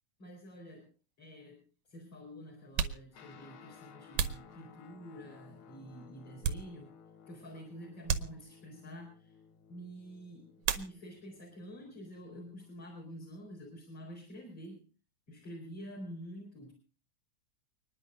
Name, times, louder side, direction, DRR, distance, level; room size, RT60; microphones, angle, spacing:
voice 1, 0.2-0.9 1.2-6.9 7.3-9.4 9.7-14.8 15.3-16.7, equal, 35° left, -3 dB, 5.1 m, -48 dB
sound 1, 0.9-1.0 1.9-2.0 2.6-5.2 5.8-7.1 7.4-7.6 8.0-8.9 10.6-11.4 11.7-12.4 12.6-14.8, right 8 dB, 70° right, 1.8 m, -38 dB
Guitar, 3.1-12.8, left 7 dB, 70° left, 2.7 m, -58 dB
29.5 x 10.5 x 2.6 m, 0.39 s
omnidirectional pair, 3.8 m